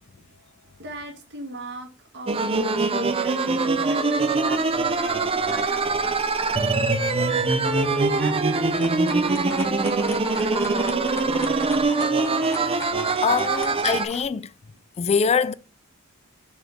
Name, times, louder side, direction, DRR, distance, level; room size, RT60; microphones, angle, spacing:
voice 1, 0.0-10.6 13.5-13.6, right 1 dB, 50° right, 1.6 m, -40 dB
sound 1, 2.3-14.1, right 3 dB, 25° right, 0.6 m, -23 dB
sound 2, 8.4-14.2, left 2 dB, 10° left, 0.8 m, -39 dB
voice 2, 13.2-14.5 15.0-15.5, left 6 dB, 30° left, 0.3 m, -23 dB
4.7 x 4.3 x 5.0 m
head